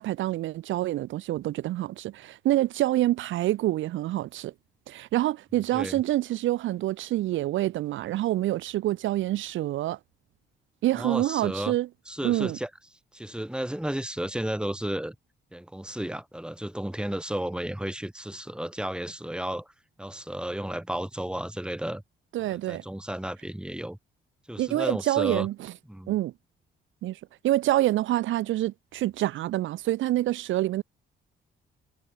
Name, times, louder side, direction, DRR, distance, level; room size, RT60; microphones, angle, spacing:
voice 1, 0.0-4.5 4.9-10.0 10.8-11.9 12.2-12.6 22.3-22.8 24.6-25.7 26.1-26.3 27.0-30.8, right 15 dB, 75° right, 0.6 m, -27 dB
voice 2, 10.9-11.8 12.1-12.7 13.1-15.1 15.5-19.7 20.0-22.0 22.4-24.0 24.5-25.5 25.9-26.1, right 1 dB, 5° right, 3.3 m, -33 dB
cardioid pair, 90°, 20 cm